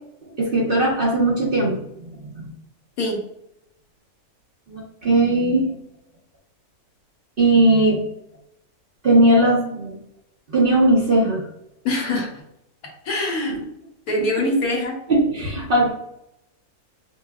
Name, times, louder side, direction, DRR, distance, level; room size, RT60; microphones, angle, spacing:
voice 1, 0.4-2.2 4.7-5.7 7.4-8.0 9.0-9.9 10.5-11.4 13.5-13.6 15.1-15.9, right 1 dB, 40° right, -4 dB, 1.0 m, -18 dB
voice 2, 11.8-12.4 13.0-13.6 14.1-15.0, left 1 dB, 75° left, 0 dB, 1.4 m, -23 dB
5.4 x 2.2 x 2.4 m, 0.78 s
omnidirectional pair, 1.6 m